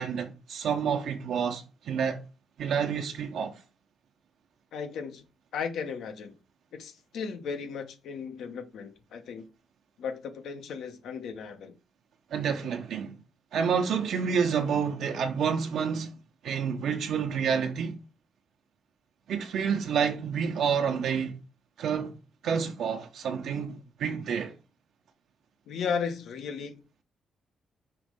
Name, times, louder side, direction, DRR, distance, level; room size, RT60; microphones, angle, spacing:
voice 1, 0.0-2.2 2.6-3.6 12.3-13.2 13.5-16.1 16.4-18.0 19.3-21.4 21.8-22.1 22.4-24.6, right 7 dB, 80° right, 0.9 m, -29 dB
voice 2, 4.7-5.2 5.5-6.3 6.7-9.5 10.0-11.7 25.7-26.8, left 6 dB, 85° left, 1.1 m, -35 dB
5.7 x 3.2 x 5.2 m
cardioid pair, 150°, 0 cm